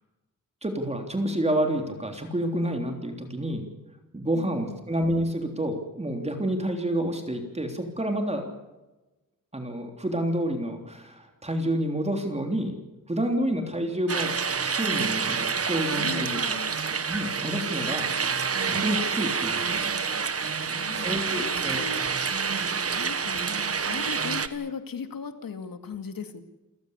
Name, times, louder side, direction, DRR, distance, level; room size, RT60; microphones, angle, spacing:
voice 1, 0.6-3.7 4.1-8.5 9.5-12.8 13.1-14.3 14.6-16.6 17.0-18.1 18.7-19.7 20.9-21.8, right 1 dB, 20° right, 4 dB, 3.5 m, -29 dB
voice 2, 4.3-4.9 16.0-16.8 20.6-22.0 22.9-23.4 23.8-26.4, left 6 dB, 80° left, 8 dB, 2.4 m, -38 dB
sound 1, 14.1-24.5, right 5 dB, 45° right, 1.4 m, -28 dB
28.5 x 15.5 x 8.2 m, 1.1 s
wide cardioid pair, 125°, 34 cm